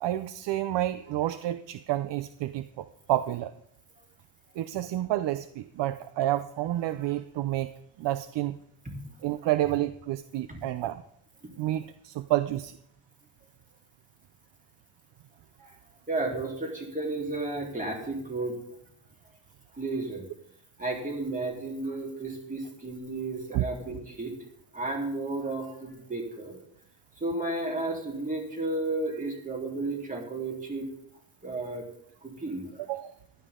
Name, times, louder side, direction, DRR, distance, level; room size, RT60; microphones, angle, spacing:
voice 1, 0.0-3.5 4.6-7.7 8.0-8.6 9.2-11.0 11.6-12.8 23.5-23.7 32.9-33.1, right 14 dB, 85° right, 13 dB, 0.7 m, -29 dB
voice 2, 16.1-18.6 19.7-20.3 20.8-24.4 24.7-26.6 27.2-30.9 31.4-31.9 32.2-32.9, right 2 dB, 20° right, 0 dB, 3.6 m, -33 dB
15.0 x 12.5 x 3.7 m, 0.73 s
cardioid pair, 125°, 41 cm